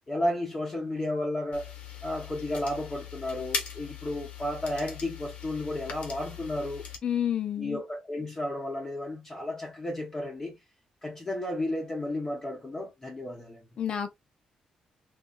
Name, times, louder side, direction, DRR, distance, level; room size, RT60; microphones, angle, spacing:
voice 1, 0.1-1.7 2.0-6.8 7.6-10.6 11.0-13.6, left 1 dB, 20° left, 0.9 m, -33 dB
sound 1, 1.5-7.0, left 6 dB, 70° left, 1.0 m, -39 dB
voice 2, 7.0-7.8 13.8-14.1, left 9 dB, 45° left, 0.7 m, -29 dB
3.8 x 2.6 x 2.3 m
cardioid pair, 150°, 2 cm